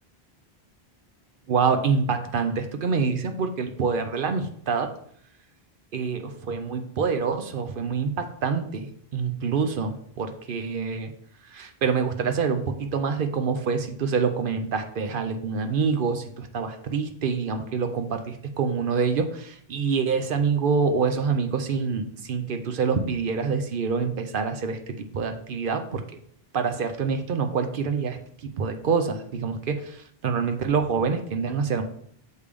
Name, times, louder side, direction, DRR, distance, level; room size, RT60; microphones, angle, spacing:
voice 1, 1.5-4.9 5.9-11.1 11.5-26.0 26.5-30.0 30.2-31.8, right 5 dB, 60° right, 7 dB, 0.8 m, -26 dB
6.6 x 3.4 x 5.1 m, 0.65 s
omnidirectional pair, 1.0 m